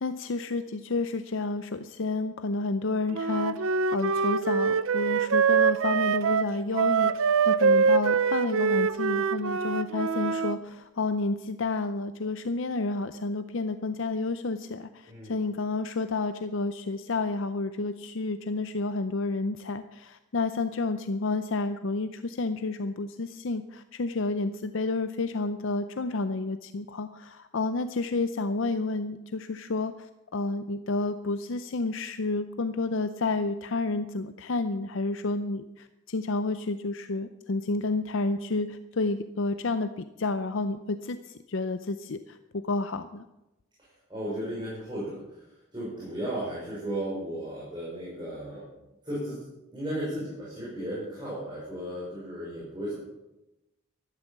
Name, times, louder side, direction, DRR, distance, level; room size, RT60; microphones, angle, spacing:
voice 1, 0.0-43.3, left 3 dB, 60° left, 10 dB, 0.6 m, -30 dB
Wind instrument woodwind instrument, 3.1-10.6, right 5 dB, 70° right, 0.5 m, -24 dB
voice 2, 15.1-15.4 43.8-45.4 45.7-48.7 49.0-49.4 49.7-53.0, right 1 dB, 20° right, -7 dB, 5.7 m, -35 dB
13.5 x 12.0 x 7.3 m, 0.98 s
head